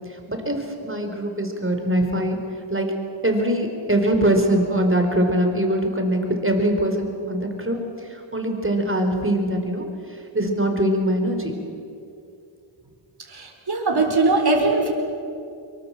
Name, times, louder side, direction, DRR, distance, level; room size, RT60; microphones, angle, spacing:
voice 1, 0.3-2.4 2.7-2.9 3.2-7.8 8.3-9.8 10.3-11.6, right 1 dB, 25° right, 4 dB, 4.7 m, -22 dB
voice 2, 13.3-14.9, right 3 dB, 50° right, 2 dB, 4.2 m, -20 dB
25.0 x 23.5 x 7.8 m, 2.6 s
wide cardioid pair, 65°, 49 cm